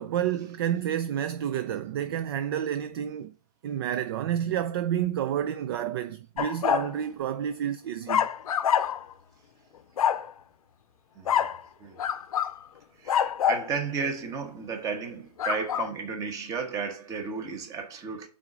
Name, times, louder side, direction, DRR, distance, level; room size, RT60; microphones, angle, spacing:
voice 1, 0.0-3.3 3.6-8.3, right 10 dB, 35° right, 0.4 m, -29 dB
sound 1, 6.4-6.9 8.1-9.1 10.0-10.3 11.3-11.6 12.0-12.6 13.1-13.7 15.4-15.9, left 9 dB, 60° left, 0.7 m, -26 dB
voice 2, 11.1-11.5 11.8-12.0 13.0-18.3, right 5 dB, 15° right, 1.1 m, -33 dB
6.0 x 4.1 x 6.0 m
hypercardioid pair, 150°, 20 cm